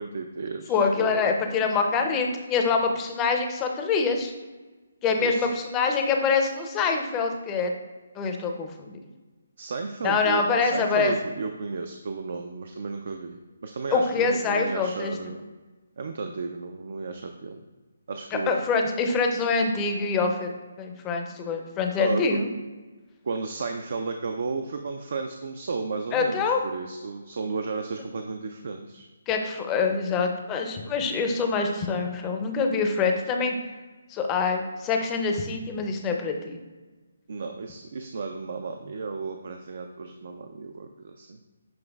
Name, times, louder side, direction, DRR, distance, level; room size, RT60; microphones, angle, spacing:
voice 1, 0.0-1.3 5.2-5.5 9.6-15.4 16.0-17.6 18.1-18.5 22.0-22.4 23.2-29.1 37.3-41.4, right 4 dB, 60° right, 5 dB, 0.3 m, -33 dB
voice 2, 0.7-4.3 5.0-7.7 8.2-9.0 10.0-11.1 13.9-15.1 18.3-20.5 20.8-22.5 26.1-26.6 29.3-33.5 34.1-36.6, left 4 dB, 20° left, 4 dB, 0.5 m, -25 dB
7.0 x 3.1 x 2.3 m, 1.3 s
figure-of-eight pair, 150°, 0 cm